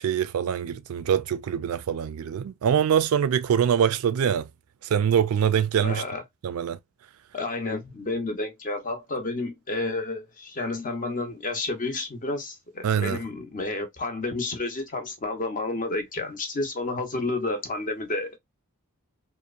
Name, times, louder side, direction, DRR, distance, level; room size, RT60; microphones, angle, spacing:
voice 1, 0.0-4.5 4.8-6.0 6.4-6.8 12.8-13.2, right 8 dB, 70° right, 0.3 m, -24 dB
voice 2, 5.8-6.2 7.3-18.4, left 2 dB, 40° left, 0.7 m, -30 dB
2.8 x 2.0 x 2.4 m
head